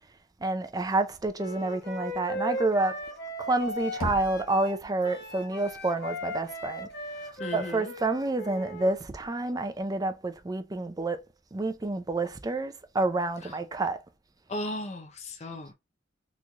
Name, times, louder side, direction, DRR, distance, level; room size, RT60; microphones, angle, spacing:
voice 1, 0.4-3.0 3.4-6.9 7.5-11.2 11.5-14.0, right 2 dB, 20° right, 0.4 m, -29 dB
Wind instrument woodwind instrument, 1.4-8.9, equal, 55° left, 1.0 m, -38 dB
Knock, 4.0-4.9, left 1 dB, 85° left, 0.9 m, -36 dB
voice 2, 7.4-7.9 14.5-15.7, left 1 dB, 35° left, 0.6 m, -36 dB
3.9 x 3.1 x 2.2 m
head